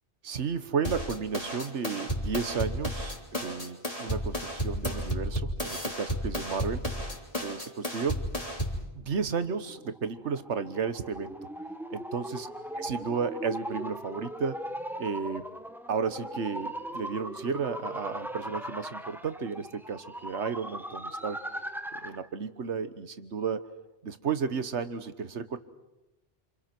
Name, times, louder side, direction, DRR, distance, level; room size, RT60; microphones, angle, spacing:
voice 1, 0.2-6.8 7.4-8.2 8.9-11.4 11.9-12.5 12.8-14.6 15.0-15.5 15.9-21.4 22.0-23.6 24.0-25.6, right 6 dB, 80° right, 12 dB, 1.5 m, -33 dB
sound 1, 0.8-8.8, equal, 30° left, 3.5 m, -33 dB
sound 2, 9.6-22.3, equal, ahead, 0.8 m, -39 dB
28.0 x 27.5 x 6.1 m, 0.97 s
omnidirectional pair, 1.2 m